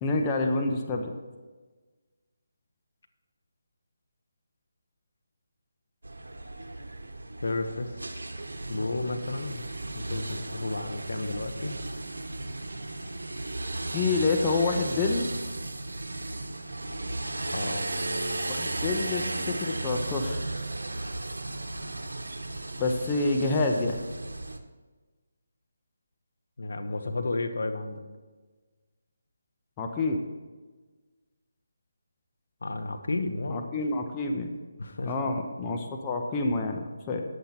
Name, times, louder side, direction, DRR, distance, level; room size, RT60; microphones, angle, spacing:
voice 1, 0.0-1.1 13.9-15.3 18.5-20.4 22.8-24.0 29.8-30.2 33.5-34.5 35.0-37.2, left 3 dB, 20° left, 2 dB, 0.9 m, -28 dB
sound 1, 6.0-24.6, right 2 dB, 90° right, 1.1 m, -35 dB
voice 2, 7.4-7.9 8.7-9.7 9.9-11.8 17.5-17.9 26.6-28.0 32.6-33.6 34.8-35.1, left 2 dB, 70° left, 7 dB, 1.2 m, -32 dB
10.0 x 8.0 x 4.4 m, 1.3 s
figure-of-eight pair, 160°, 0 cm